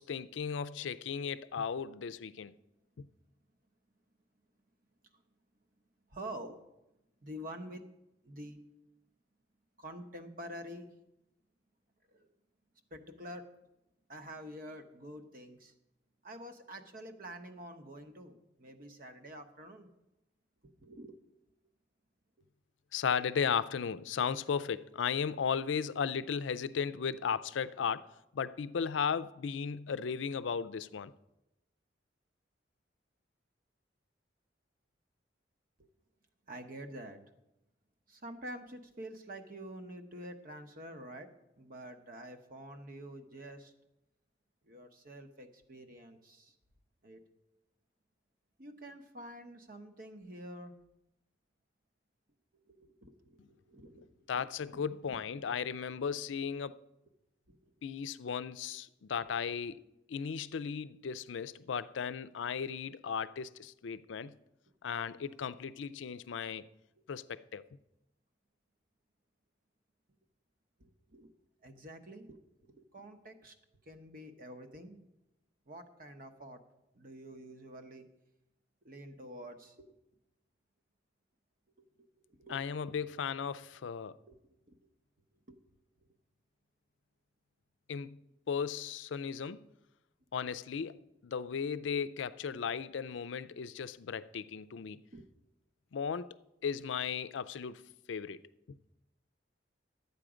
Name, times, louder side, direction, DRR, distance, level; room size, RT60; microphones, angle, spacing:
voice 1, 0.0-2.5 22.9-31.1 54.3-56.8 57.8-59.8 60.1-64.3 64.8-66.6 67.1-67.6 82.5-84.2 87.9-88.2 88.5-89.6 90.3-95.0 95.9-96.3 96.6-97.8 98.1-98.4, left 6 dB, 80° left, 0.4 m, -36 dB
voice 2, 6.1-6.6 7.2-7.9 8.2-8.6 9.8-10.9 12.1-12.3 12.9-13.4 14.1-15.7 16.2-19.9 20.6-21.2 35.8-35.9 36.5-37.2 38.1-41.3 41.6-43.7 44.7-46.5 47.0-47.2 48.6-50.7 52.6-54.4 54.7-54.8 55.1-55.5 55.9-56.1 57.5-57.7 58.6-58.7 70.8-71.3 71.6-73.5 73.9-75.0 75.7-76.6 76.9-78.1 78.8-80.0 81.8-82.6 84.3-84.4 84.6-84.9 85.5-85.6 92.5-92.8 95.1-95.3, right 1 dB, 50° right, 1.0 m, -48 dB
12.0 x 8.3 x 5.0 m
head